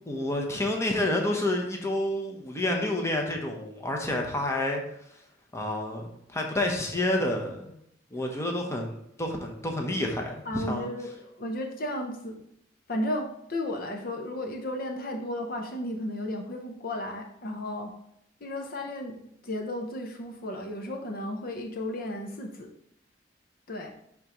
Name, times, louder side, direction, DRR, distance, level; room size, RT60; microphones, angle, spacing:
voice 1, 0.1-4.8 5.1-5.2 5.5-7.7 8.1-10.9, left 1 dB, 15° left, 1 dB, 0.9 m, -29 dB
voice 2, 10.5-12.4 12.9-17.9 18.4-22.7 23.7-23.9, left 1 dB, 55° left, 3 dB, 0.8 m, -34 dB
10.5 x 3.6 x 3.1 m, 0.72 s
head